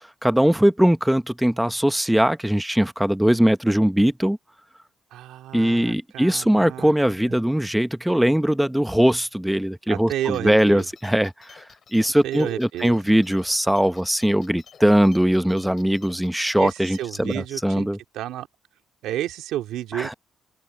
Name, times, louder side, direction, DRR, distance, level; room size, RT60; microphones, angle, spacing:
voice 1, 0.2-4.4 5.5-11.6 11.9-18.0 19.9-20.1, equal, 5° right, 1.0 m, -20 dB
voice 2, 5.1-6.9 7.3-7.4 9.9-10.9 12.2-13.0 16.6-17.9 18.1-18.5 19.0-20.1, right 13 dB, 90° right, 2.4 m, -31 dB
sound 1, 10.2-17.3, left 7 dB, 55° left, 7.3 m, -51 dB
open air
cardioid pair, 90°, 0 cm